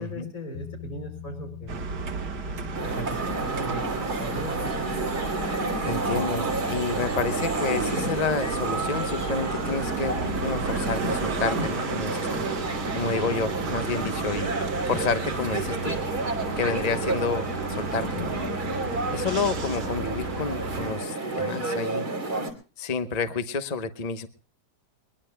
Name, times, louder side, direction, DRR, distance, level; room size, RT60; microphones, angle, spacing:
voice 1, 0.0-1.8 2.8-4.9, right 1 dB, 55° left, 3 dB, 5.4 m, -38 dB
Bass guitar, 0.5-3.9, left 10 dB, 85° left, 2.1 m, -42 dB
sound 1, 1.7-20.9, right 4 dB, 85° right, 2.0 m, -33 dB
sound 2, 2.7-22.5, right 2 dB, 65° right, 3.5 m, -30 dB
voice 2, 5.8-12.5 12.9-14.5 14.9-16.0 16.6-18.4 19.1-22.1 22.8-24.3, left 4 dB, 35° left, 10 dB, 0.7 m, -30 dB
22.0 x 21.5 x 2.2 m, 0.38 s
omnidirectional pair, 1.8 m